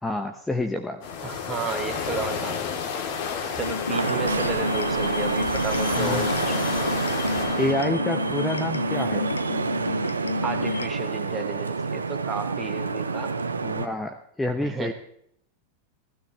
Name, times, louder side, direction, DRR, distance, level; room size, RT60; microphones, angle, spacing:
voice 1, 0.0-1.0 6.0-6.3 7.6-9.3 13.6-14.9, left 2 dB, 5° left, 5 dB, 1.0 m, -28 dB
sound 1, 1.0-7.7, left 6 dB, 50° left, 3.1 m, -31 dB
voice 2, 1.2-3.0 3.5-6.6 10.4-13.4 14.6-14.9, right 4 dB, 20° right, 5 dB, 2.2 m, -33 dB
sound 2, 3.6-10.9, left 4 dB, 80° left, 0.5 m, -31 dB
Vehicle horn car horn honking / Traffic noise roadway noise, 3.9-13.9, right 4 dB, 75° right, 0.9 m, -28 dB
15.5 x 15.5 x 3.2 m, 0.68 s
figure-of-eight pair, 90°, 0 cm